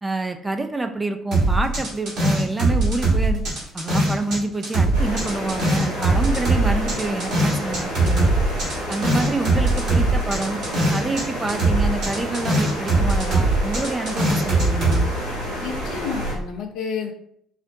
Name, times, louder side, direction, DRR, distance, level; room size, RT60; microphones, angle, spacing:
voice 1, 0.0-3.4 3.7-8.3 8.9-10.6 10.9-15.1, right 2 dB, 20° right, 5 dB, 0.4 m, -27 dB
sound 1, 1.3-4.4 4.6-11.2 11.5-15.0, right 2 dB, 60° right, 1.5 m, -20 dB
sound 2, 4.9-16.3, equal, 85° right, 1.1 m, -30 dB
voice 2, 15.6-17.1, left 6 dB, 60° left, 3 dB, 0.5 m, -30 dB
4.1 x 2.0 x 2.6 m, 0.70 s
figure-of-eight pair, 50°, 0 cm